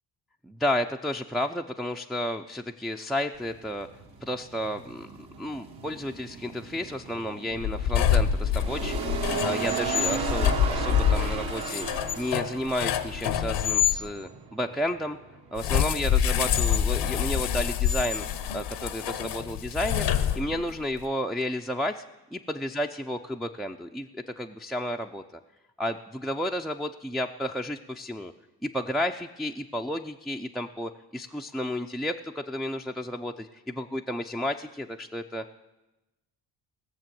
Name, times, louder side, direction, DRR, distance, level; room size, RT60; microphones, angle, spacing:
voice 1, 0.4-3.9 4.2-11.9 12.2-15.2 15.5-18.2 18.5-20.1 20.3-22.0 22.3-25.2 25.8-28.3 28.6-35.5, left 1 dB, ahead, 2 dB, 0.5 m, -32 dB
sound 1, 3.3-17.8, right 6 dB, 60° right, 1.9 m, -36 dB
sound 2, 7.5-14.0 15.6-20.8, left 9 dB, 70° left, 0.9 m, -26 dB
17.0 x 6.9 x 7.6 m, 1.0 s
supercardioid pair, 70°, 42 cm